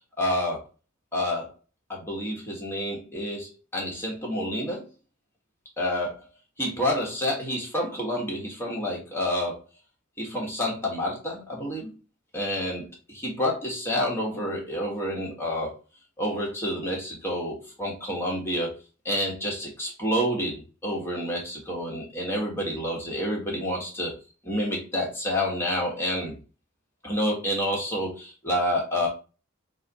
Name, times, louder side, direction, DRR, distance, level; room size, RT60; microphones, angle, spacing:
voice 1, 0.2-0.6 1.1-1.5 1.9-4.9 5.8-6.2 6.6-9.6 10.2-11.9 12.3-15.7 16.2-18.8 19.0-24.1 24.4-26.3 27.0-29.1, equal, 10° left, -3 dB, 1.2 m, -29 dB
4.1 x 2.5 x 3.9 m, 0.34 s
head